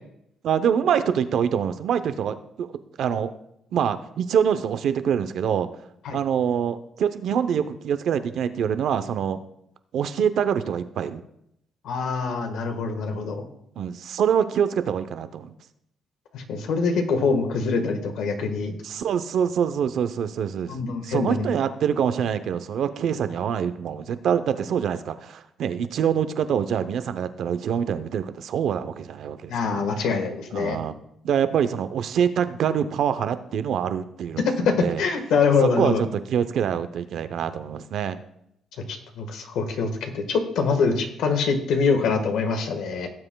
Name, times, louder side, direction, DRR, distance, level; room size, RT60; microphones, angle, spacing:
voice 1, 0.4-2.7 3.0-3.3 3.7-5.7 6.1-9.4 9.9-11.2 13.8-15.5 18.8-20.7 21.0-29.9 30.5-31.0 31.2-35.0 35.6-38.2, right 8 dB, 70° right, 11 dB, 0.7 m, -25 dB
voice 2, 11.8-13.5 16.3-18.8 20.7-21.5 29.5-30.8 34.4-36.0 38.9-43.1, left 4 dB, 80° left, 6 dB, 1.5 m, -24 dB
17.5 x 7.7 x 2.3 m, 0.76 s
cardioid pair, 90°, 0 cm